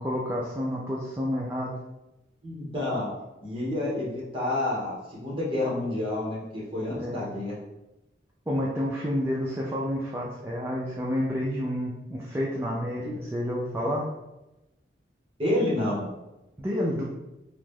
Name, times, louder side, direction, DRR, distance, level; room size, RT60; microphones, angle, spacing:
voice 1, 0.0-1.7 6.9-7.2 8.5-14.0 16.6-17.0, equal, 15° right, -4 dB, 0.3 m, -29 dB
voice 2, 2.4-3.1 3.4-7.6 15.4-16.1, left 1 dB, 30° right, -5 dB, 1.0 m, -29 dB
2.9 x 2.0 x 3.5 m, 0.96 s
head